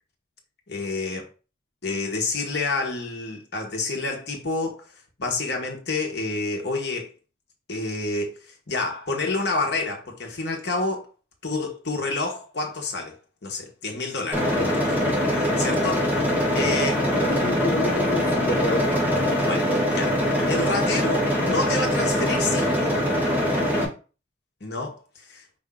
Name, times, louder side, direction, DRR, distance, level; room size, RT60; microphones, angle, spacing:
voice 1, 0.7-1.3 1.8-4.9 5.2-7.1 7.7-8.4 8.7-11.1 11.4-17.1 19.5-19.7 19.9-20.2 20.5-22.9 24.6-25.4, left 3 dB, 60° left, 1.2 m, -29 dB
sound 1, 14.3-23.8, equal, 10° right, 1.2 m, -23 dB
voice 2, 17.1-19.4, left 2 dB, 40° left, 0.6 m, -30 dB
5.1 x 2.7 x 3.6 m
head